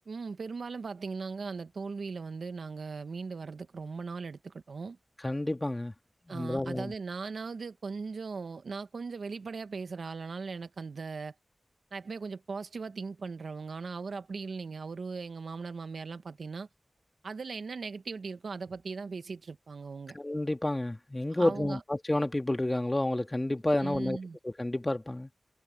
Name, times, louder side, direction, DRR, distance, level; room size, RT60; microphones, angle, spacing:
voice 1, 0.1-5.0 6.3-11.3 11.9-16.7 17.2-20.2 21.4-21.8 23.8-24.4, right 4 dB, 85° right, 1.0 m, -39 dB
voice 2, 5.2-5.9 6.3-6.9 20.1-24.2 24.4-25.3, left 1 dB, 25° left, 1.7 m, -30 dB
wide cardioid pair, 55°, 0 cm